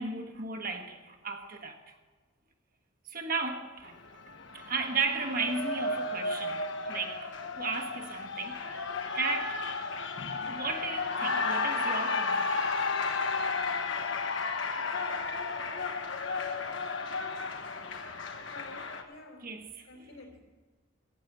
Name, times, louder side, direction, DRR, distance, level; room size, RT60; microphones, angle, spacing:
voice 1, 0.0-1.8 3.1-3.9 4.5-8.8 9.1-9.6 10.5-12.7 14.6-14.9 19.4-20.1, right 4 dB, 40° right, 1.3 m, -35 dB
Cheering, 3.8-19.0, left 4 dB, 60° left, 1.2 m, -33 dB
voice 2, 18.5-19.6 19.8-20.4, left 2 dB, 75° left, 3.3 m, -50 dB
15.0 x 8.9 x 8.1 m
head